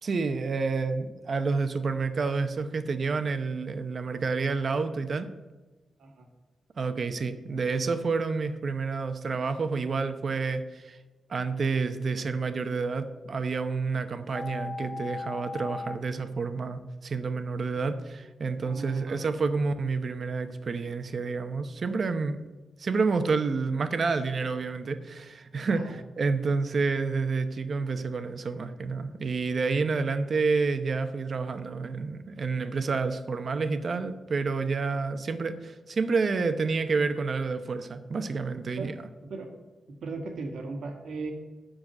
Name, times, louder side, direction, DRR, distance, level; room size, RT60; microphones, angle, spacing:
voice 1, 0.0-5.3 6.8-11.0 11.3-22.5 22.8-38.9, right 4 dB, 45° right, 9 dB, 0.8 m, -29 dB
sound 1, 14.3-15.9, left 4 dB, 20° left, 0.9 m, -37 dB
voice 2, 18.6-19.2 25.7-25.9 38.7-38.9 39.3-39.5 40.0-41.3, right 3 dB, 85° right, 3 dB, 1.8 m, -37 dB
7.3 x 6.4 x 7.6 m, 1.2 s
wide cardioid pair, 145°, 0 cm